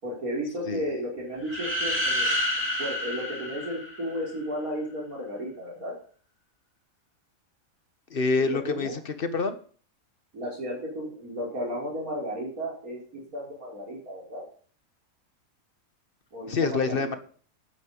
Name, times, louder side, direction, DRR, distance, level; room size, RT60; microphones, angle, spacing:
voice 1, 0.0-2.3 2.8-5.9 8.4-9.0 10.3-14.5 16.3-17.2, equal, 75° right, -2 dB, 5.2 m, -34 dB
sound 1, 1.4-4.4, left 1 dB, 10° right, 3.4 m, -29 dB
voice 2, 8.1-9.6 16.5-17.2, left 4 dB, 40° left, 9 dB, 1.6 m, -26 dB
12.0 x 9.2 x 5.5 m, 0.43 s
omnidirectional pair, 1.5 m